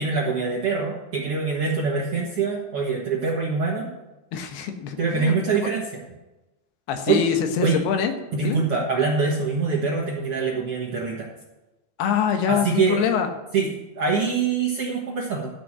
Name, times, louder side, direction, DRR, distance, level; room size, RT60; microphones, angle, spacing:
voice 1, 0.0-3.9 5.0-6.0 7.1-7.2 7.6-7.8 8.3-11.3 12.5-13.0 13.5-15.5, right 4 dB, 55° right, -3 dB, 1.7 m, -24 dB
voice 2, 4.3-5.3 6.9-8.1 8.4-8.6 12.0-13.3, left 7 dB, 80° left, 6 dB, 3.1 m, -24 dB
13.5 x 6.3 x 7.5 m, 1.1 s
omnidirectional pair, 4.5 m